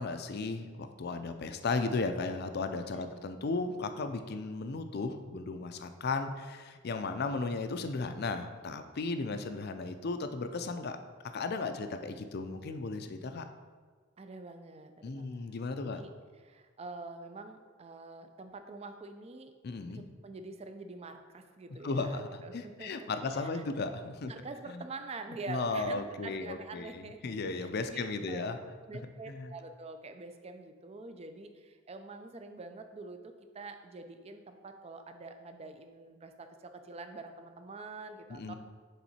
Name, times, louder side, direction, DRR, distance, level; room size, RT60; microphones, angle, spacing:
voice 1, 0.0-11.0 11.3-13.5 15.0-16.0 19.6-20.0 21.8-24.3 24.7-24.8 25.5-28.6 29.3-29.5 38.3-38.5, left 3 dB, 55° left, 8 dB, 0.5 m, -35 dB
voice 2, 2.9-3.3 9.3-9.5 14.2-15.5 15.8-16.1 16.4-19.5 19.9-23.6 24.3-27.2 27.5-28.5 28.9-38.5, right 3 dB, 30° right, 7 dB, 0.4 m, -46 dB
7.2 x 3.7 x 4.2 m, 1.5 s
head